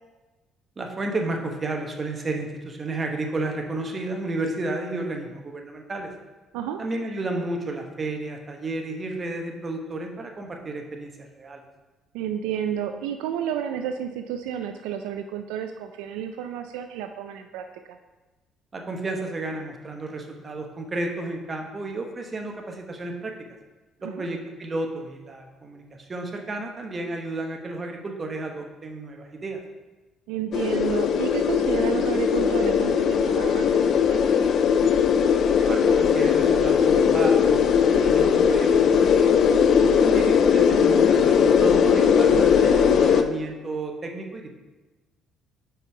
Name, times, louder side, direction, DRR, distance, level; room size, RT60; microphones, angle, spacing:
voice 1, 0.8-6.1 6.8-11.6 18.7-23.3 24.0-29.6 35.6-39.4 40.0-44.5, right 2 dB, 35° right, 3 dB, 1.0 m, -32 dB
voice 2, 12.1-17.6 24.0-24.3 30.3-34.5, right 9 dB, 90° right, 6 dB, 0.3 m, -31 dB
sound 1, 30.5-43.2, left 7 dB, 60° left, 0.4 m, -19 dB
5.3 x 4.6 x 4.7 m, 1.2 s
supercardioid pair, 70°, 0 cm